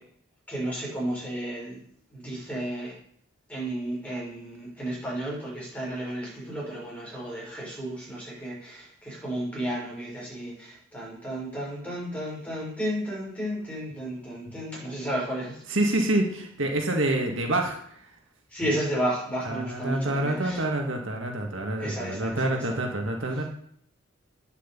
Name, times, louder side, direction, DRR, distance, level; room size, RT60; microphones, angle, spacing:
voice 1, 0.5-1.8 2.1-2.9 3.5-15.6 18.5-20.6 21.8-22.6, right 1 dB, 5° left, -5 dB, 6.4 m, -33 dB
voice 2, 15.7-18.0 19.5-23.4, right 1 dB, 65° right, 2 dB, 2.1 m, -27 dB
9.6 x 8.2 x 8.6 m, 0.64 s
head